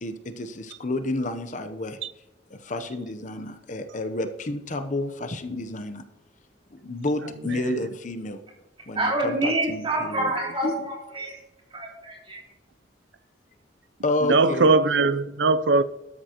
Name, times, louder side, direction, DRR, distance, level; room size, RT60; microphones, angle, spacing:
voice 1, 0.0-2.0 2.5-6.0 6.7-8.4 8.9-10.3 10.6-10.8 14.0-14.7, left 2 dB, 45° left, 8 dB, 0.8 m, -30 dB
voice 2, 8.9-11.4 11.7-12.4, right 1 dB, 30° right, -2 dB, 3.2 m, -27 dB
voice 3, 14.2-15.8, right 3 dB, 75° right, 13 dB, 0.6 m, -19 dB
13.0 x 11.0 x 3.0 m, 0.95 s
head